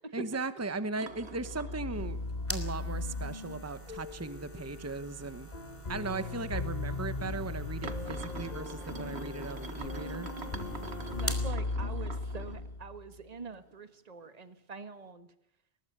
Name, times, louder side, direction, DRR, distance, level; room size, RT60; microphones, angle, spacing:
voice 1, 0.1-2.2 2.5-5.5 5.9-10.3, right 3 dB, 15° right, 13 dB, 1.0 m, -37 dB
sound 1, 1.0-2.4 2.8-2.9 3.6-3.7 4.2-4.4 4.7-4.8 5.7-5.8 6.6-6.7 7.8-12.7 13.1-13.8 14.2-14.3, right 3 dB, 80° right, 2.0 m, -46 dB
sound 2, 1.1-13.2, left 3 dB, 40° left, 1.4 m, -38 dB
sound 3, 1.9-11.5, equal, 10° left, 3.1 m, -44 dB
voice 2, 11.2-15.3, right 4 dB, 40° right, 11 dB, 1.6 m, -44 dB
22.0 x 20.5 x 6.8 m, 0.77 s
omnidirectional pair, 1.1 m